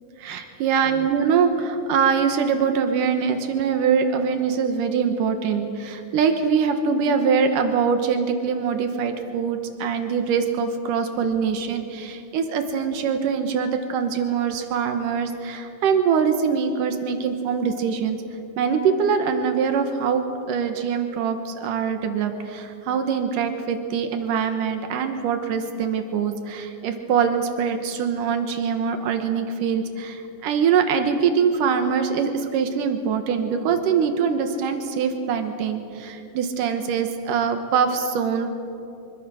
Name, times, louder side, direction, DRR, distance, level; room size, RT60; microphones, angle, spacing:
voice 1, 0.2-18.2 18.6-38.5, right 6 dB, 85° right, 6 dB, 2.9 m, -23 dB
25.0 x 23.0 x 6.4 m, 2.7 s
omnidirectional pair, 3.6 m